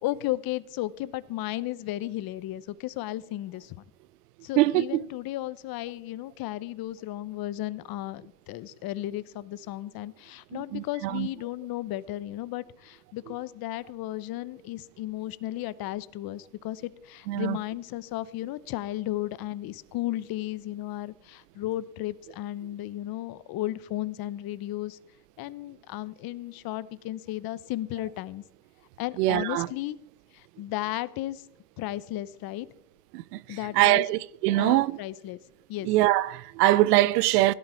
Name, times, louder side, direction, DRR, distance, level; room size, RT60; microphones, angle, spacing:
voice 1, 0.0-3.8 4.4-25.0 25.4-28.4 29.0-30.0 30.3-31.5 31.8-32.7 33.5-34.1 34.5-35.4 35.7-35.9, left 15 dB, 50° left, 0.9 m, -34 dB
voice 2, 4.6-5.0 10.5-11.3 17.3-17.6 29.2-29.7 33.1-34.9 35.9-37.5, right 16 dB, 85° right, 0.7 m, -23 dB
16.5 x 11.5 x 4.5 m
supercardioid pair, 100°, 46 cm